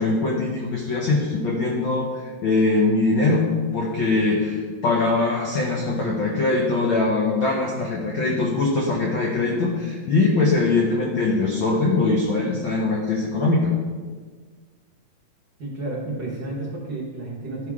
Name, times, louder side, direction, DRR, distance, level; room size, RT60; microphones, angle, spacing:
voice 1, 0.0-3.5 3.7-13.7, left 3 dB, 75° left, -1 dB, 1.1 m, -22 dB
voice 2, 15.6-17.7, right 2 dB, 45° right, -5 dB, 1.6 m, -31 dB
12.0 x 4.9 x 3.6 m, 1.5 s
omnidirectional pair, 3.3 m